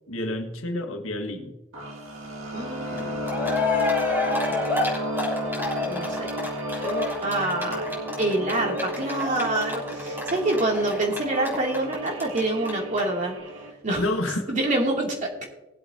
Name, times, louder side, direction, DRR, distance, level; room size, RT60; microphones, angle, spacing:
voice 1, 0.1-1.6 14.0-14.5, left 1 dB, 75° left, 4 dB, 1.6 m, -29 dB
sound 1, 1.7-13.7, equal, 80° right, 1.9 m, -32 dB
voice 2, 2.5-4.4 5.8-6.3 6.8-13.4 13.8-14.1 14.5-15.4, right 2 dB, 40° right, -1 dB, 2.6 m, -27 dB
Cheering, 3.0-3.1 3.2-12.4 12.6-12.7 13.0-13.1, left 3 dB, 10° right, 3.6 m, -29 dB
20.0 x 8.0 x 2.8 m, 1.0 s
head